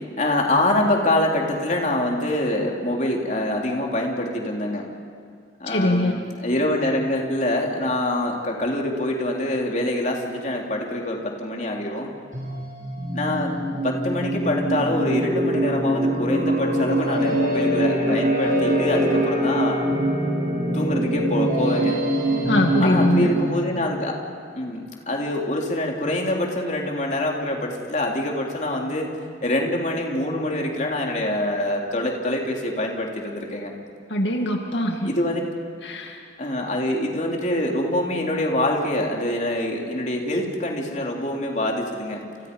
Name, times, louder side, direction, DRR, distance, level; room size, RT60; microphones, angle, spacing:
voice 1, 0.2-4.9 5.6-12.1 13.1-13.5 13.8-19.8 20.7-22.0 22.8-24.2 24.6-29.1 29.4-33.7 35.0-35.5 36.4-42.2, left 1 dB, 45° left, 0 dB, 3.5 m, -25 dB
voice 2, 5.7-6.2 22.5-23.3 34.1-35.1 35.8-36.2, left 1 dB, 90° left, 2 dB, 2.3 m, -22 dB
sound 1, 12.3-23.7, right 1 dB, 50° right, 7.6 m, -23 dB
30.0 x 29.0 x 5.5 m, 2.2 s
head